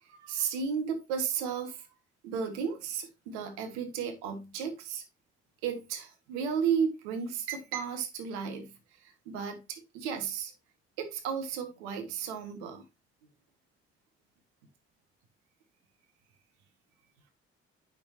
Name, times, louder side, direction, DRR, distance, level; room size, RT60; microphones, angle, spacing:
voice 1, 0.1-1.9 2.2-5.0 5.6-8.7 9.3-10.5 11.0-12.8, right 7 dB, 75° right, 1.1 m, -33 dB
8.3 x 5.9 x 2.9 m
figure-of-eight pair, 40°, 34 cm